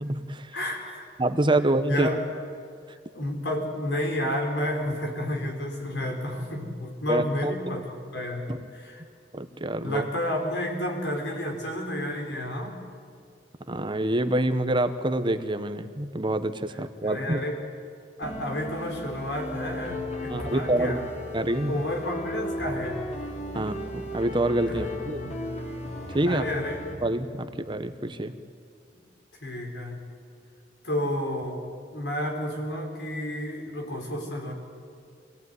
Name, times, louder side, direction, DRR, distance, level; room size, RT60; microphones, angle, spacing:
voice 1, 0.0-0.6 1.2-2.1 7.1-7.5 8.5-8.6 9.3-10.0 13.7-17.4 20.3-21.0 21.3-21.8 23.5-25.4 26.1-26.4 27.0-28.4, right 1 dB, 30° right, 10 dB, 1.0 m, -26 dB
voice 2, 0.5-1.1 1.9-2.2 3.1-8.5 8.7-9.0 9.8-12.8 17.0-17.6 18.2-21.1 21.7-23.0 23.5-23.7 24.7-24.8 26.2-26.8 29.4-30.0 30.8-31.6 31.9-34.5, left 1 dB, 85° left, 2 dB, 4.5 m, -31 dB
sound 1, 18.2-27.0, left 1 dB, 40° left, 3.1 m, -35 dB
24.5 x 17.5 x 9.5 m, 2.3 s
head